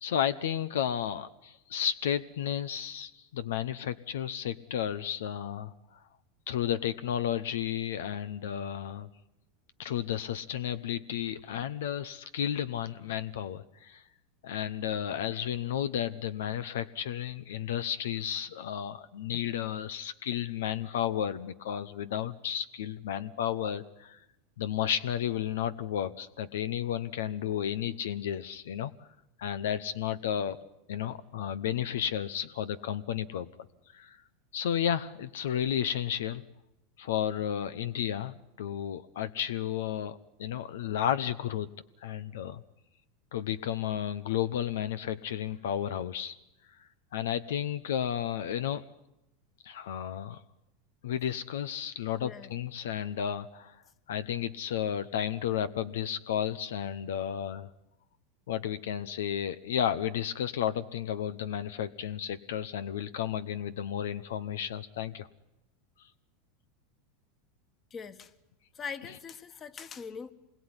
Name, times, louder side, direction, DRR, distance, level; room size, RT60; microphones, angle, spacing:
voice 1, 0.0-6.0 6.5-9.1 9.8-14.0 14.4-24.2 24.6-28.9 29.4-30.6 30.9-33.5 33.9-34.2 34.5-36.4 37.0-41.7 42.0-42.6 43.3-46.4 47.1-48.8 49.6-50.4 51.0-53.8 54.1-57.7 58.5-65.3, left 10 dB, 85° left, 0.9 m, -32 dB
voice 2, 52.2-52.5 67.9-68.3 68.7-70.3, left 6 dB, 30° left, 1.6 m, -41 dB
26.5 x 21.5 x 9.9 m
supercardioid pair, 120°, 0 cm